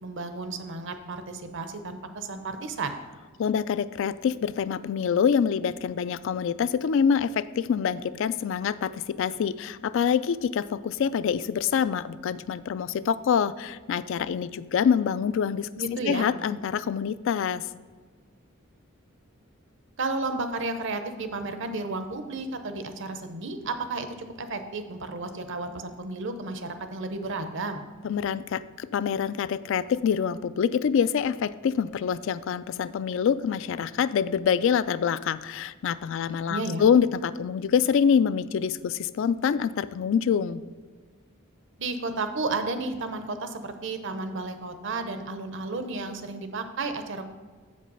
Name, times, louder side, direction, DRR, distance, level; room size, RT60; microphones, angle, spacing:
voice 1, 0.0-3.0 15.8-16.3 20.0-24.1 24.4-27.8 36.5-36.8 41.8-47.3, right 3 dB, 60° right, 8 dB, 0.7 m, -32 dB
voice 2, 3.4-15.7 16.1-17.6 28.0-40.6, left 7 dB, 60° left, 15 dB, 0.3 m, -26 dB
7.8 x 5.2 x 5.4 m, 1.5 s
head